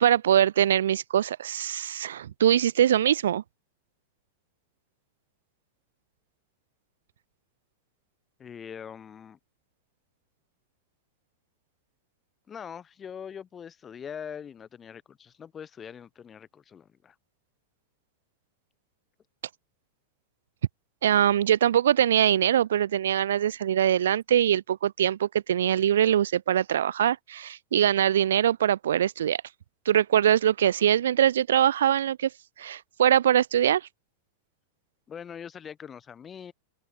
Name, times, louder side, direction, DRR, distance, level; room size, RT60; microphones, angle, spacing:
voice 1, 0.0-3.4 21.0-29.4 29.9-32.3 32.6-33.9, right 10 dB, 65° right, 0.4 m, -23 dB
voice 2, 8.4-9.4 12.5-17.1 35.1-36.5, left 7 dB, 20° left, 1.2 m, -42 dB
open air
figure-of-eight pair, 90°, 0 cm